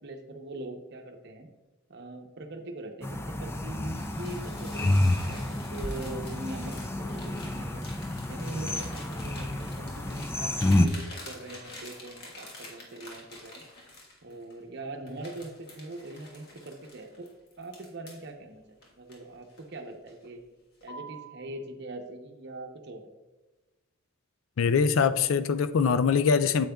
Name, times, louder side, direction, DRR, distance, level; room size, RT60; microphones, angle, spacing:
voice 1, 0.0-1.5 1.9-7.8 8.3-13.6 14.2-17.3 17.6-20.4 20.8-23.1, right 2 dB, 55° right, 4 dB, 0.8 m, -42 dB
sound 1, 3.0-10.9, left 1 dB, 10° left, 0.4 m, -29 dB
sound 2, 3.8-14.6 15.1-18.3 18.8-19.7 20.1-20.4 20.8-21.4, left 1 dB, 50° left, 1.4 m, -48 dB
voice 2, 24.6-26.7, left 6 dB, 75° left, 13 dB, 0.4 m, -23 dB
9.0 x 7.7 x 2.3 m, 1.1 s
head